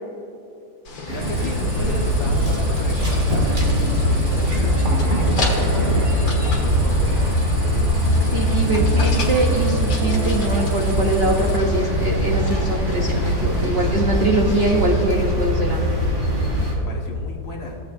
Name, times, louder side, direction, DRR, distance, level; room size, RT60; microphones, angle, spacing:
sound 1, 0.8-15.0, left 3 dB, 75° left, 2.2 m, -35 dB
sound 2, 1.0-16.7, equal, 40° right, 2.3 m, -21 dB
voice 1, 1.1-7.2 16.7-17.8, left 1 dB, 45° left, -2 dB, 1.7 m, -34 dB
Cricket, 1.2-11.6, right 1 dB, 20° right, 1.5 m, -42 dB
voice 2, 8.3-16.0, right 2 dB, 60° right, -1 dB, 0.6 m, -23 dB
16.5 x 7.6 x 2.5 m, 2.7 s
omnidirectional pair, 2.1 m